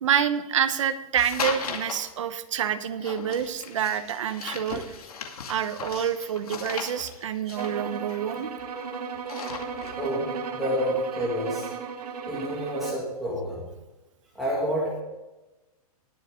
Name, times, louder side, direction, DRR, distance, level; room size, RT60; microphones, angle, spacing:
voice 1, 0.0-4.9 5.5-8.5, right 9 dB, 55° right, 11 dB, 1.0 m, -27 dB
sound 1, 1.2-2.1 3.0-8.8 9.1-10.1, left 6 dB, 70° left, 2.3 m, -37 dB
sound 2, 7.5-13.1, right 5 dB, 85° right, 1.9 m, -35 dB
voice 2, 10.0-11.7 12.2-13.7 14.4-15.0, equal, ahead, -7 dB, 2.1 m, -29 dB
20.0 x 6.9 x 3.8 m, 1.1 s
hypercardioid pair, 180°, 19 cm